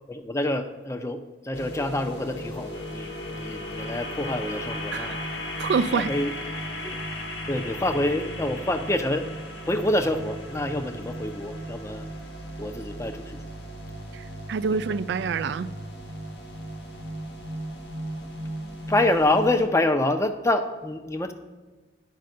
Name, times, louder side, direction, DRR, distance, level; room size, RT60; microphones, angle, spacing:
voice 1, 0.1-5.2 5.9-6.3 6.8-7.0 7.5-9.3 9.7-12.1 12.6-13.4 18.9-21.3, left 1 dB, 15° left, 8 dB, 0.5 m, -26 dB
sound 1, 1.5-19.7, equal, 65° left, 1.4 m, -36 dB
voice 2, 5.6-6.1 14.1-15.7, right 5 dB, 70° right, 17 dB, 0.3 m, -26 dB
10.5 x 5.4 x 6.6 m, 1.3 s
head